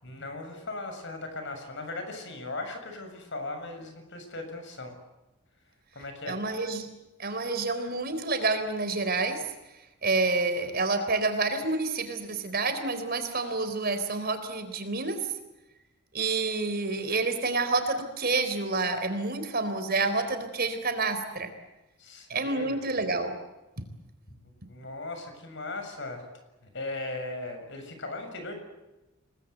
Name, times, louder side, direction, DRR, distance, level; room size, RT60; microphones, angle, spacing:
voice 1, 0.0-4.9 5.9-6.4 22.0-22.8 24.6-26.2 26.7-28.6, left 2 dB, 60° left, 6 dB, 7.0 m, -38 dB
voice 2, 6.3-6.9 7.2-9.5 10.0-15.2 16.1-21.5 22.3-23.3 23.8-23.9, right 3 dB, 50° right, 8 dB, 4.0 m, -28 dB
28.5 x 20.5 x 8.2 m, 1.0 s
head